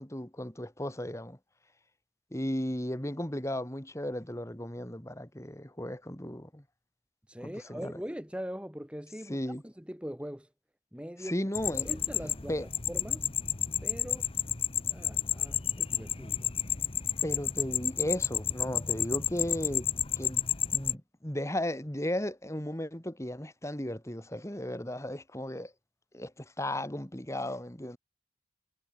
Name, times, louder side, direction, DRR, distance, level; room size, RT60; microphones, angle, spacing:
voice 1, 0.0-1.4 2.3-6.6 7.4-8.0 9.3-9.6 11.2-11.9 12.5-12.7 17.2-19.9 20.2-25.7 26.1-28.0, left 1 dB, 15° left, 2.5 m, -35 dB
voice 2, 7.3-10.5 10.9-11.4 11.9-12.6 12.9-13.3 13.8-14.3 14.9-16.5, equal, 5° right, 1.6 m, -41 dB
sound 1, 11.6-20.9, left 9 dB, 30° left, 0.9 m, -31 dB
head